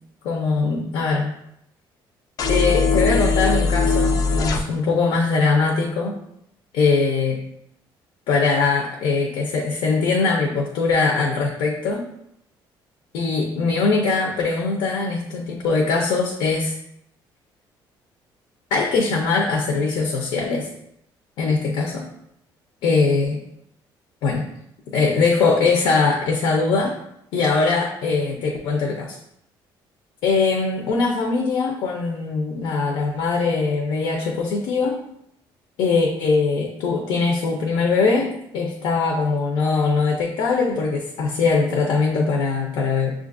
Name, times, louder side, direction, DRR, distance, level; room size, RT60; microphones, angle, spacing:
voice 1, 0.2-1.3 2.5-6.1 6.7-7.4 8.3-12.0 13.1-16.7 18.7-20.7 21.4-22.0 22.8-23.4 24.2-24.4 24.9-26.9 27.3-29.2 30.2-35.0 35.8-43.1, left 4 dB, 90° left, 1 dB, 0.6 m, -21 dB
sound 1, 2.4-4.6, left 4 dB, 45° left, 0.4 m, -20 dB
6.4 x 2.5 x 2.5 m, 0.75 s
cardioid pair, 160°, 9 cm